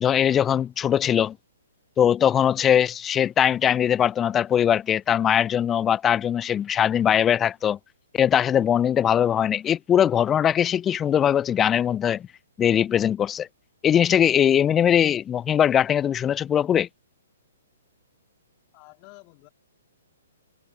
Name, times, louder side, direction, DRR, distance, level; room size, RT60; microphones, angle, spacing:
voice 1, 0.0-1.3 2.0-7.8 8.1-12.2 12.6-13.5 13.8-16.9, left 9 dB, 15° left, 0.4 m, -21 dB
voice 2, 18.7-19.5, left 33 dB, 35° left, 3.4 m, -49 dB
figure-of-eight pair, 125°, 0 cm